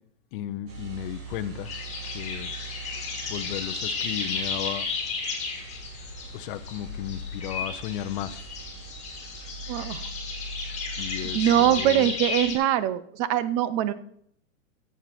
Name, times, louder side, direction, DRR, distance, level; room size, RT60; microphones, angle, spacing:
voice 1, 0.3-1.7 2.0-2.5 3.3-4.9 6.3-8.4 11.0-12.1, left 12 dB, 40° left, 10 dB, 0.8 m, -34 dB
sound 1, 0.7-11.4, right 7 dB, 50° right, 4.1 m, -45 dB
sound 2, 1.6-12.5, left 4 dB, 15° left, 2.9 m, -33 dB
voice 2, 9.7-10.0 11.2-13.9, right 11 dB, 25° right, 15 dB, 0.5 m, -23 dB
14.0 x 8.0 x 4.5 m, 0.67 s
hypercardioid pair, 150°, 39 cm